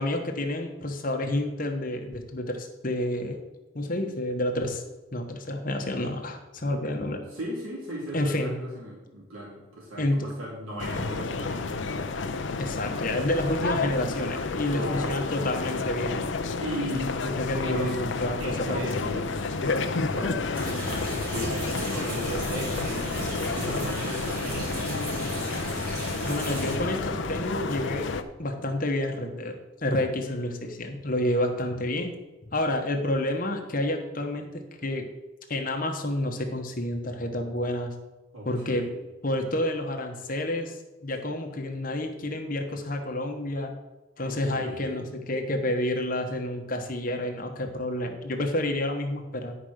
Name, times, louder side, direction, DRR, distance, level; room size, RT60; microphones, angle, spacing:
voice 1, 0.0-3.4 3.7-4.8 5.1-7.2 8.1-8.5 10.0-10.3 12.6-16.2 17.4-18.8 26.2-28.1 28.4-32.1 32.5-35.1 35.5-37.9 38.4-38.9 39.2-43.7 44.2-49.5, left 1 dB, 40° left, 4 dB, 1.1 m, -29 dB
voice 2, 7.3-11.7 14.7-15.2 16.6-17.2 17.6-18.0 18.4-24.6 38.3-39.0 44.2-45.0, equal, 80° right, -5 dB, 3.2 m, -36 dB
sound 1, 10.8-28.2, left 4 dB, 65° left, 0.6 m, -30 dB
sound 2, 20.5-26.8, right 1 dB, 45° right, 3.5 m, -35 dB
10.0 x 5.1 x 6.5 m, 1.1 s
head